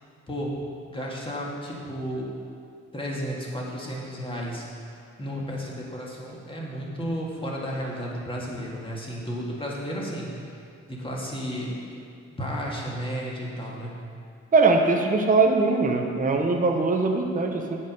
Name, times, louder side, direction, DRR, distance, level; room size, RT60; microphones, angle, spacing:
voice 1, 0.3-0.6 0.9-2.3 2.9-4.6 5.2-10.3 10.9-11.8 12.4-13.9, equal, 15° left, -4 dB, 1.8 m, -32 dB
voice 2, 14.5-17.8, right 3 dB, 25° right, 2 dB, 0.9 m, -21 dB
8.3 x 5.4 x 5.4 m, 2.4 s
cardioid pair, 90°, 30 cm